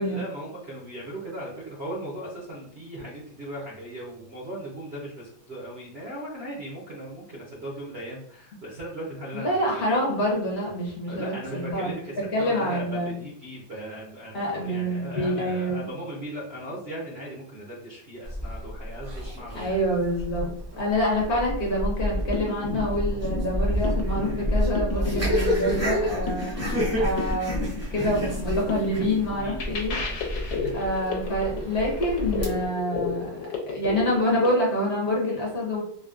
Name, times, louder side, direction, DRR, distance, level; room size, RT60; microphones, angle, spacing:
voice 1, 0.0-9.6 9.9-10.0 11.1-19.8 29.4-30.2 30.6-30.7, right 1 dB, 60° right, -5 dB, 0.6 m, -38 dB
voice 2, 9.3-11.9 12.3-13.2 14.3-15.9 19.5-29.9 30.7-35.8, equal, 60° left, -3 dB, 1.4 m, -27 dB
sound 1, 18.2-32.6, equal, 15° right, 0.4 m, -29 dB
sound 2, 22.0-34.5, left 4 dB, 85° left, 1.5 m, -33 dB
4.0 x 2.1 x 2.4 m, 0.67 s
omnidirectional pair, 2.0 m